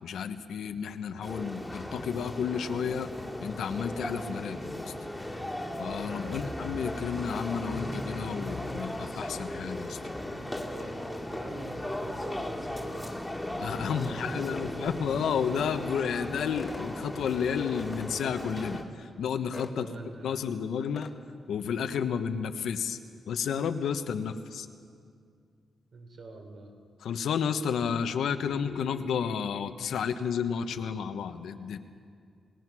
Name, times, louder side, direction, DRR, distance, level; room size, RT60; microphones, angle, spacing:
voice 1, 0.0-3.1 3.4-4.9 5.8-10.0 13.5-19.9 20.2-21.1 21.5-23.0 23.3-24.7 27.0-31.8, left 7 dB, 85° left, 8 dB, 1.1 m, -31 dB
sound 1, 1.2-18.8, left 1 dB, 5° left, 2.1 m, -37 dB
voice 2, 6.2-6.6 10.4-13.2 13.7-15.3 19.8-20.5 25.9-26.7, right 3 dB, 60° right, 3 dB, 3.8 m, -45 dB
sound 2, 16.6-16.9 17.8-18.1 19.5-19.8 21.0-21.1, left 3 dB, 25° left, 1.2 m, -42 dB
28.5 x 19.5 x 6.2 m, 2.2 s
wide cardioid pair, 145°, 0 cm